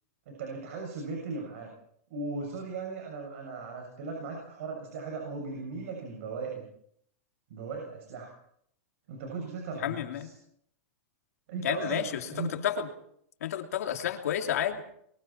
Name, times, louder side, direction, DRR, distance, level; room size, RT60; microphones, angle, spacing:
voice 1, 0.3-1.7 2.1-6.7 7.5-8.3 9.1-10.3 11.5-12.5, right 4 dB, 55° right, 1 dB, 7.1 m, -37 dB
voice 2, 9.8-10.3 11.6-12.9 13.4-14.8, left 10 dB, 80° left, 4 dB, 2.9 m, -31 dB
29.5 x 23.5 x 4.5 m, 0.70 s
supercardioid pair, 160°, 8 cm